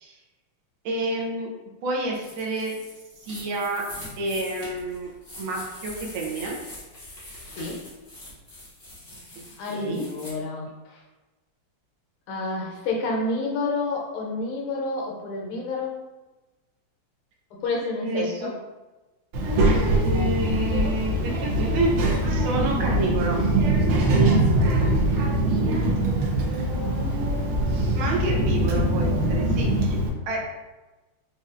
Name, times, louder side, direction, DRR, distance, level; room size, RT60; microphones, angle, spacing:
voice 1, 0.8-1.5 1.8-2.8 3.2-3.8 4.2-5.1 5.4-6.5 9.7-10.0 18.0-18.5 19.7-21.9 22.3-23.4 27.9-30.4, right 2 dB, 75° right, -1 dB, 1.4 m, -29 dB
sound 1, 2.1-10.3, left 1 dB, 35° left, 1.1 m, -43 dB
voice 2, 9.6-11.0 12.3-15.9 17.6-18.5 24.2-24.9 25.9-26.2, left 3 dB, 80° left, -1 dB, 1.7 m, -30 dB
Child speech kid speaking, 19.3-30.1, right 1 dB, 90° right, 1.5 m, -22 dB
4.3 x 2.6 x 2.4 m, 1.1 s
omnidirectional pair, 2.3 m